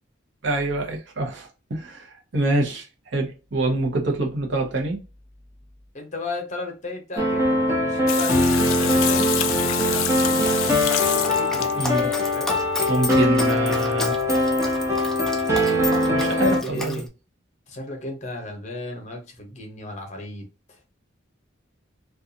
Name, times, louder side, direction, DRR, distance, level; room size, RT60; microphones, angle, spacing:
voice 1, 0.4-5.0 11.8-12.1 12.9-14.2 16.1-17.0, right 2 dB, 65° right, 0.8 m, -26 dB
voice 2, 5.9-12.5 16.4-17.1 17.7-20.4, left 1 dB, 40° left, 0.8 m, -35 dB
sound 1, 7.2-16.6, left 1 dB, 15° right, 0.7 m, -22 dB
Water tap faucet / Sink (filling or washing), 8.1-12.4 13.8-13.9 14.2-14.3 14.6-14.7, left 11 dB, 90° left, 0.3 m, -28 dB
Dog, 10.3-17.0, left 2 dB, ahead, 0.3 m, -33 dB
2.5 x 2.4 x 2.6 m
head